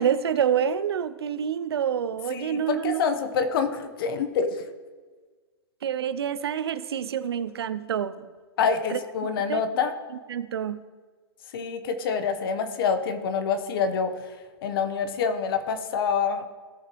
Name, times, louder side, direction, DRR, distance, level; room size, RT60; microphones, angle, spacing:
voice 1, 0.0-3.1 5.8-8.3 8.9-9.0 9.5-9.6 10.3-10.8, right 8 dB, 70° right, 14 dB, 0.6 m, -27 dB
voice 2, 2.3-4.6 8.6-9.9 11.5-14.4 14.6-16.4, left 6 dB, 60° left, 8 dB, 1.2 m, -26 dB
17.0 x 6.6 x 3.2 m, 1.4 s
figure-of-eight pair, 110°, 14 cm